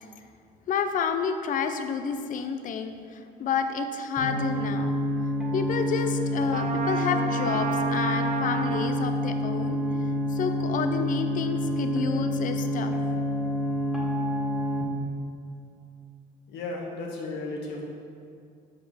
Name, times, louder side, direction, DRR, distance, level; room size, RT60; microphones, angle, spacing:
voice 1, 0.7-5.0 5.5-9.8 10.3-13.0, left 6 dB, 50° left, 8 dB, 0.6 m, -30 dB
sound 1, 4.2-14.8, equal, ahead, 1.9 m, -28 dB
Trumpet, 6.5-9.0, right 6 dB, 45° right, 0.6 m, -32 dB
voice 2, 16.5-17.8, left 2 dB, 80° left, -1 dB, 1.4 m, -34 dB
7.4 x 5.1 x 4.9 m, 2.3 s
cardioid pair, 110°, 17 cm